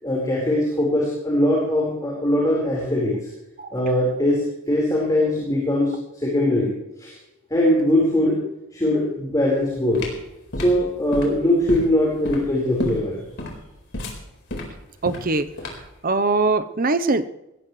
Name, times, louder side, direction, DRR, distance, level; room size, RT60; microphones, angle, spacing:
voice 1, 0.0-3.1 3.7-4.4 4.7-5.9 6.2-6.7 7.0-7.1 7.5-8.4 8.7-10.1 10.6-13.2, left 1 dB, 20° left, -4 dB, 4.6 m, -21 dB
sound 1, 9.5-16.0, left 1 dB, 55° left, 4.4 m, -31 dB
voice 2, 15.0-15.5 16.0-17.3, right 3 dB, 45° right, 11 dB, 0.9 m, -21 dB
19.5 x 17.0 x 3.3 m, 0.91 s
head